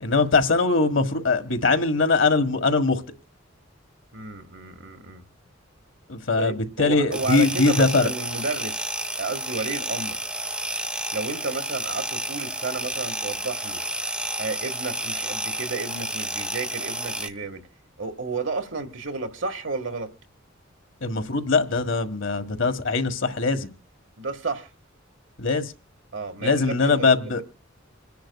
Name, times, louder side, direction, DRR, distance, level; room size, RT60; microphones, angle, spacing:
voice 1, 0.0-3.0 6.1-8.1 21.0-23.7 25.4-25.7 26.4-27.4, left 3 dB, 70° left, 1.6 m, -21 dB
voice 2, 4.1-5.2 6.4-8.9 9.2-10.2 11.1-13.8 14.4-17.6 18.0-20.1 24.2-24.7 26.1-27.4, right 3 dB, 65° right, 1.8 m, -32 dB
sound 1, 7.1-17.3, right 1 dB, 5° right, 1.2 m, -31 dB
28.0 x 10.5 x 2.4 m
head